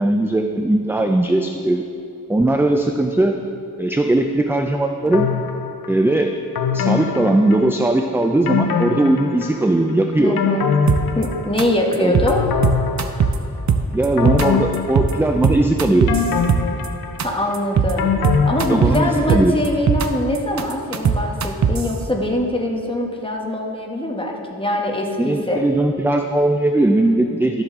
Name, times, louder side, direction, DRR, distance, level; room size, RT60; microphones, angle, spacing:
voice 1, 0.0-1.8 2.3-3.4 3.8-5.3 5.9-6.3 6.7-10.4 10.8-10.9 11.9-12.2 13.9-16.2 18.7-19.5 25.2-27.6, right 1 dB, 5° right, 4 dB, 0.3 m, -18 dB
sound 1, 5.1-5.9 6.5-8.0 8.5-9.8 10.1-11.8 12.3-13.6 14.2-15.6 16.1-19.3 19.7-19.8, left 6 dB, 80° left, 0.6 m, -23 dB
voice 2, 10.2-10.7 11.1-12.4 17.2-18.2 18.5-25.6, left 1 dB, 15° left, 0 dB, 1.2 m, -23 dB
sound 2, 10.9-11.3 11.6-11.7 11.9-12.3 12.6-13.4 13.7-14.5 14.7-15.1 15.4-16.9 17.2-17.3 17.5-17.9 18.2-19.0 19.3-20.1 20.4-21.9, right 6 dB, 50° right, 0.6 m, -18 dB
12.0 x 7.8 x 3.7 m, 2.7 s
wide cardioid pair, 115°, 35 cm